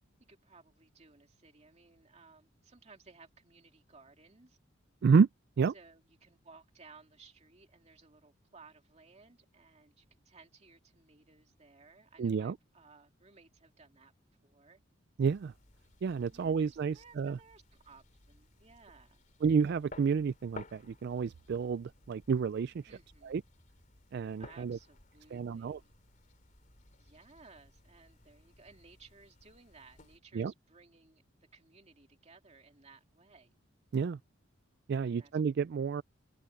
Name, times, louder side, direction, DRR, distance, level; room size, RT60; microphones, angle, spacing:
voice 1, 0.3-4.6 5.7-14.1 14.4-14.8 16.3-19.2 22.9-23.4 24.4-25.9 27.0-33.6 35.0-35.4 35.9-36.0, right 4 dB, 35° right, 2.5 m, -59 dB
voice 2, 12.2-12.6 15.2-15.5 16.0-17.4 19.4-22.8 23.2-23.4 24.1-24.8 25.3-25.8 30.3-30.5 33.9-34.2 34.9-36.0, right 5 dB, 55° right, 0.3 m, -30 dB
sound 1, 15.3-30.2, left 2 dB, 40° left, 3.4 m, -57 dB
head